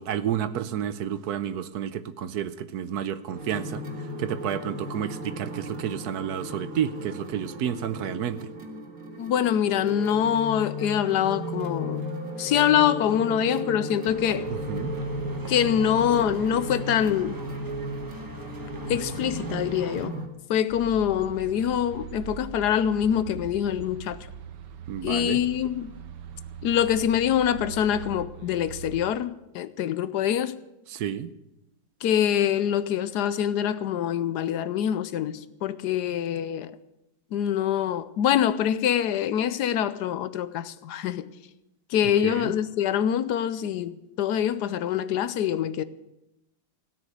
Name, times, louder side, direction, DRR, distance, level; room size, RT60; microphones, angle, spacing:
voice 1, 0.0-3.8 4.2-8.5 14.5-14.9 24.9-25.4 30.9-31.3 42.2-42.5, right 9 dB, 70° right, 1.2 m, -30 dB
sound 1, 3.3-20.3, equal, 55° right, 2.2 m, -35 dB
voice 2, 9.2-12.0 12.4-14.5 15.5-17.4 18.9-20.2 20.5-24.3 25.0-25.9 26.6-30.6 32.0-36.8 37.3-41.3 41.9-45.8, left 9 dB, 75° left, 1.2 m, -25 dB
sound 2, 14.0-20.1, equal, 15° right, 1.0 m, -41 dB
sound 3, 20.7-29.1, right 8 dB, 85° right, 1.5 m, -41 dB
17.0 x 6.3 x 9.9 m
omnidirectional pair, 1.8 m